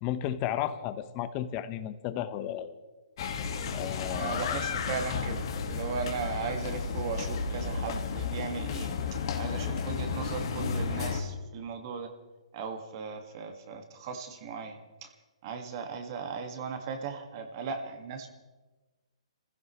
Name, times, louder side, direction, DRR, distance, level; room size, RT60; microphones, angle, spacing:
voice 1, 0.0-2.8 3.7-4.6, left 11 dB, 30° left, 11 dB, 1.1 m, -33 dB
sound 1, 3.2-11.2, left 5 dB, 50° left, 1.8 m, -33 dB
voice 2, 4.1-12.1 12.5-15.1 15.4-18.3, right 5 dB, 40° right, 5 dB, 1.9 m, -37 dB
28.5 x 15.5 x 3.2 m, 1.2 s
hypercardioid pair, 140°, 3 cm